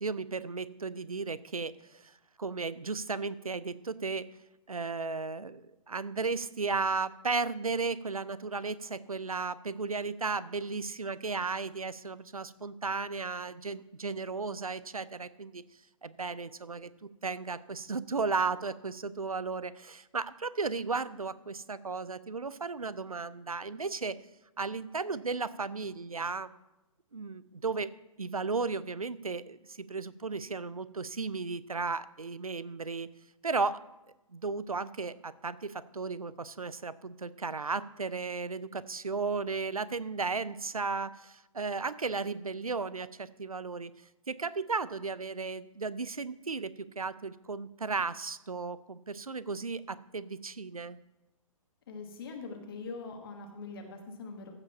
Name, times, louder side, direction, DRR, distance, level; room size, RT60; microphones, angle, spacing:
voice 1, 0.0-2.1 2.4-4.3 4.7-15.6 16.0-24.2 24.6-26.5 27.1-27.9 28.2-33.1 33.4-33.8 34.3-43.9 44.3-51.0, right 4 dB, 80° right, 18 dB, 0.5 m, -35 dB
voice 2, 51.9-54.5, left 4 dB, 40° left, 3 dB, 1.3 m, -42 dB
14.5 x 5.0 x 5.7 m, 0.95 s
figure-of-eight pair, 130°, 18 cm